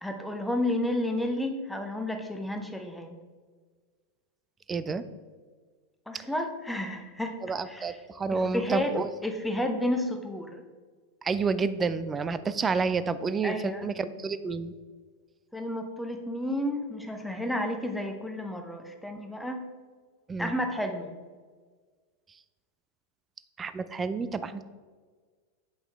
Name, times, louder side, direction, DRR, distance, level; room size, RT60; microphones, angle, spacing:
voice 1, 0.0-3.2 6.1-7.4 7.7-7.9 8.3-8.9 9.2-10.6 13.4-13.8 15.5-19.6 20.4-21.1, left 1 dB, 5° left, 5 dB, 0.8 m, -31 dB
voice 2, 4.7-5.0 7.4-9.1 11.2-14.7 20.3-20.5 23.6-24.6, right 4 dB, 20° right, 14 dB, 0.4 m, -29 dB
7.8 x 5.5 x 3.4 m, 1.5 s
figure-of-eight pair, 90°, 0 cm